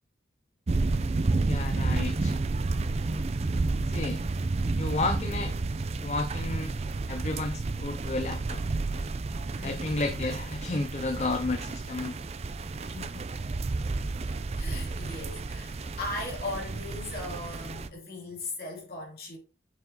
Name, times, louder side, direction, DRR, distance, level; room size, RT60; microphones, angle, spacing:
sound 1, 0.7-17.9, right 3 dB, 35° right, 0.4 m, -31 dB
voice 1, 1.5-2.4 3.9-4.2 4.8-5.5 6.0-6.7 7.1-8.6 9.6-12.2, left 2 dB, 40° left, 0.5 m, -32 dB
voice 2, 9.5-9.9 12.8-13.3 14.6-19.4, left 2 dB, 55° left, 3.0 m, -38 dB
7.2 x 5.8 x 2.8 m
head